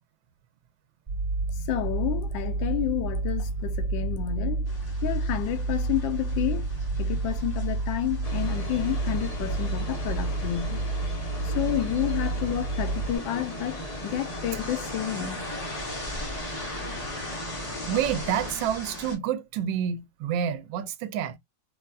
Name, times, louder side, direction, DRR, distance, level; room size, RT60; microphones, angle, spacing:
sound 1, 1.1-13.2, right 3 dB, 60° right, 0.4 m, -30 dB
voice 1, 1.6-4.7 5.0-6.7 7.0-10.9 11.4-15.5, left 12 dB, 80° left, 1.3 m, -30 dB
sound 2, 4.7-19.2, left 1 dB, 20° left, 1.2 m, -40 dB
sound 3, 8.2-18.5, left 1 dB, 50° left, 0.4 m, -38 dB
voice 2, 17.9-21.4, right 9 dB, 75° right, 1.2 m, -28 dB
4.0 x 2.3 x 2.2 m
omnidirectional pair, 2.1 m